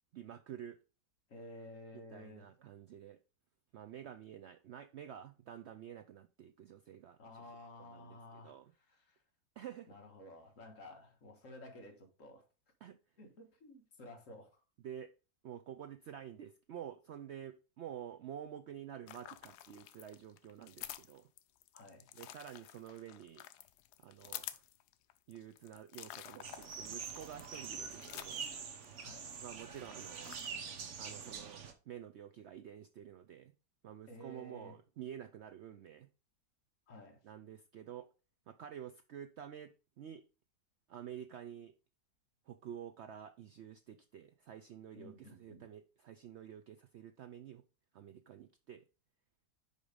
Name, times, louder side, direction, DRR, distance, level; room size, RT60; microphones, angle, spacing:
voice 1, 0.1-0.8 2.1-3.2 3.7-7.5 7.8-8.7 9.6-9.9 12.8-13.0 14.8-15.1 15.4-21.3 22.1-23.5 24.0-24.6 25.3-28.5 29.4-30.3 31.0-31.6 31.9-33.5 33.8-36.1 37.2-38.1 38.5-40.2 40.9-41.7 42.5-47.6 47.9-48.8, right 9 dB, 85° right, 0.6 m, -49 dB
voice 2, 1.3-2.5 7.2-8.6 8.9-9.2 9.9-12.5 13.2-14.5 21.7-22.1 29.0-29.3 34.1-34.8 36.9-37.2 44.9-45.6, left 1 dB, 55° left, 1.8 m, -53 dB
sound 1, 19.1-29.3 29.6-30.5, left 13 dB, 85° left, 1.1 m, -50 dB
sound 2, 26.4-31.7, right 6 dB, 50° right, 1.2 m, -45 dB
5.5 x 5.1 x 4.9 m
omnidirectional pair, 1.7 m